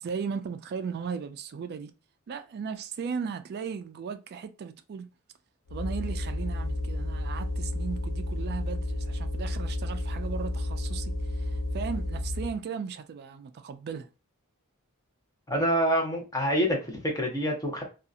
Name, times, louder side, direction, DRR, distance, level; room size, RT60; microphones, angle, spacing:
voice 1, 0.0-1.9 2.3-5.1 5.7-14.1, right 6 dB, 50° right, 0.3 m, -36 dB
sound 1, 5.7-12.6, left 1 dB, 85° left, 0.6 m, -31 dB
voice 2, 15.5-17.8, equal, 15° left, 0.8 m, -26 dB
2.7 x 2.4 x 2.4 m
head